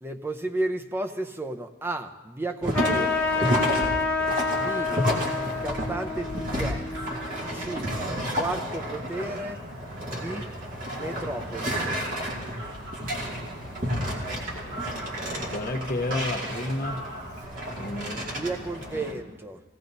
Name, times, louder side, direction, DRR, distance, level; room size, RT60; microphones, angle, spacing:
voice 1, 0.0-3.6 4.5-5.1 5.3-7.2 7.5-7.9 8.3-9.6 10.0-10.5 10.9-11.9 18.2-19.6, right 2 dB, 10° right, 6 dB, 0.6 m, -33 dB
sound 1, 2.6-19.1, equal, 45° right, 2.2 m, -31 dB
Trumpet, 2.7-7.7, left 4 dB, 10° left, 1.3 m, -28 dB
Fowl, 4.2-17.4, right 1 dB, 85° right, 5.6 m, -46 dB
voice 2, 15.5-17.0 17.8-18.5, left 2 dB, 50° left, 2 dB, 0.9 m, -31 dB
17.0 x 17.0 x 2.7 m, 1.2 s
head